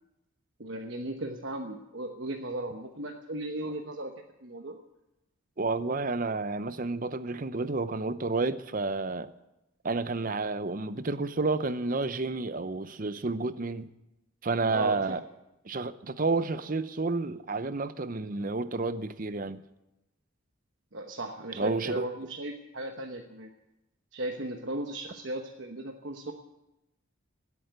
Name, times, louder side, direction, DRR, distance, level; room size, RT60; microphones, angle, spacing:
voice 1, 0.6-4.1 4.4-4.8 14.7-15.2 20.9-23.5 24.1-26.3, right 1 dB, 60° right, 1.1 m, -36 dB
voice 2, 5.6-9.3 9.8-13.9 14.4-15.2 15.6-19.6 21.5-22.1, right 3 dB, 40° right, 0.7 m, -30 dB
17.0 x 8.5 x 9.4 m
head